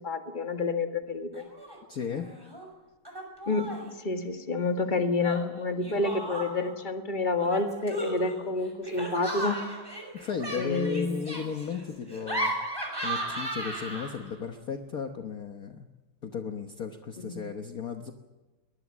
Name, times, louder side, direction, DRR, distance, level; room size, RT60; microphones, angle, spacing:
voice 1, 0.0-1.4 3.5-9.6 10.6-11.2 17.2-17.4, left 3 dB, 25° left, 6 dB, 1.8 m, -29 dB
Laughter, 1.3-1.8 2.0-2.7 3.1-3.9 5.2-6.7 7.4-14.3, right 1 dB, 10° right, 6.0 m, -35 dB
voice 2, 1.9-2.3 10.1-12.5 13.0-15.9 16.2-18.1, left 6 dB, 50° left, 6 dB, 1.5 m, -35 dB
22.0 x 20.5 x 7.4 m, 1.2 s
omnidirectional pair, 2.2 m